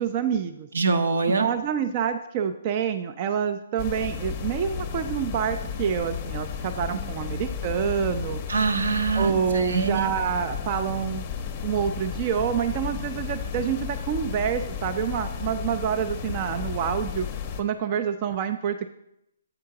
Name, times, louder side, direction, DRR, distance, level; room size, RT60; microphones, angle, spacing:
voice 1, 0.0-0.7 1.4-8.4 9.1-11.2 11.6-17.3 17.6-18.9, right 8 dB, 30° right, 8 dB, 0.3 m, -27 dB
voice 2, 0.7-1.4 8.5-10.1, right 4 dB, 75° right, 7 dB, 0.8 m, -24 dB
sound 1, 3.8-17.6, left 7 dB, 30° left, 0.6 m, -33 dB
7.9 x 3.7 x 5.7 m, 0.80 s
hypercardioid pair, 160°, 0 cm